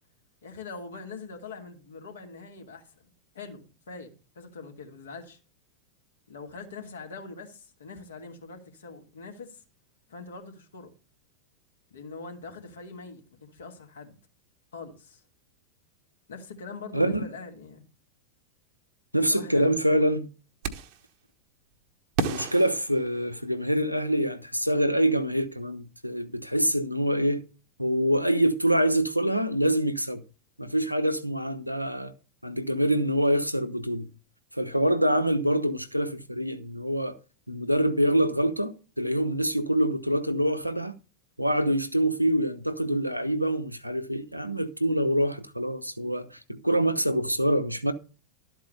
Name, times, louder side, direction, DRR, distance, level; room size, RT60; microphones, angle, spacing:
voice 1, 0.4-5.4 6.3-9.6 10.1-10.9 11.9-14.2 14.7-15.2 16.3-17.8 19.2-20.0, left 4 dB, 65° left, 2.6 m, -43 dB
voice 2, 16.9-17.3 19.1-20.3 22.2-27.5 27.8-30.2 30.6-32.1 32.4-34.1 34.6-37.2 37.5-40.9 41.4-47.9, equal, 90° right, 0.9 m, -25 dB
sound 1, 20.6-21.1 22.2-23.7, right 6 dB, 45° right, 1.2 m, -33 dB
12.5 x 4.6 x 6.7 m
figure-of-eight pair, 90°, 0 cm